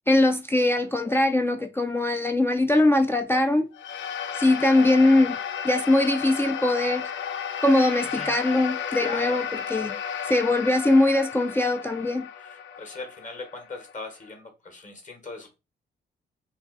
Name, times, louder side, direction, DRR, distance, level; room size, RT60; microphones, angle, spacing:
voice 1, 0.1-3.7 4.3-5.4 5.6-7.0 7.6-9.9 10.2-12.3, left 2 dB, 10° left, 0.3 m, -21 dB
sound 1, 3.7-14.3, left 8 dB, 80° left, 0.4 m, -33 dB
voice 2, 9.0-9.4 12.4-15.5, left 3 dB, 40° left, 1.1 m, -39 dB
2.6 x 2.3 x 3.7 m
cardioid pair, 95°, 19 cm